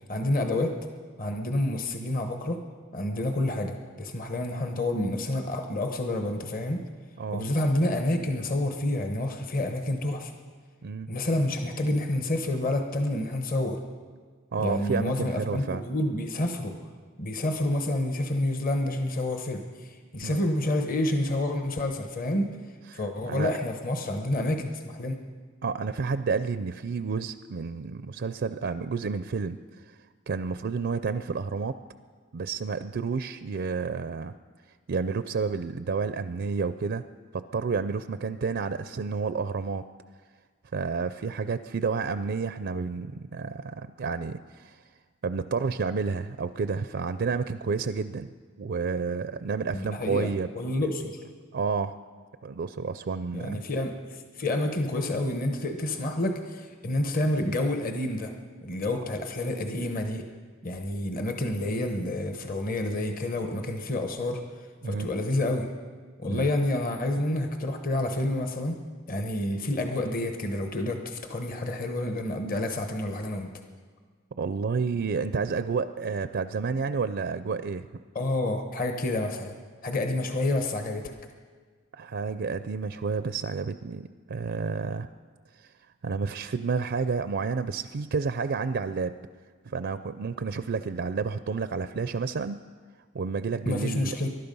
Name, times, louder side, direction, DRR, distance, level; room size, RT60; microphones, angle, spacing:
voice 1, 0.1-0.7 1.2-2.6 2.9-6.8 7.3-10.3 11.1-13.8 14.6-16.7 17.2-22.5 22.9-25.2 49.7-51.1 53.3-58.3 58.6-60.2 60.6-64.4 64.8-65.7 66.2-68.8 69.1-73.5 78.1-79.5 79.8-81.1 93.7-94.3, left 1 dB, 40° left, 5 dB, 1.1 m, -29 dB
voice 2, 7.2-7.5 10.8-11.1 14.5-15.8 20.2-20.4 22.9-23.5 25.6-30.0 30.3-31.8 32.3-34.3 34.9-37.0 37.3-39.9 40.7-44.8 45.2-48.3 48.6-50.5 50.8-50.9 51.5-52.0 52.4-53.6 64.8-65.1 66.3-66.5 74.4-77.9 81.9-85.1 85.5-85.7 86.0-89.2 89.6-92.6 93.1-94.2, right 5 dB, 55° right, 12 dB, 0.4 m, -30 dB
20.5 x 12.0 x 5.4 m, 1.5 s
head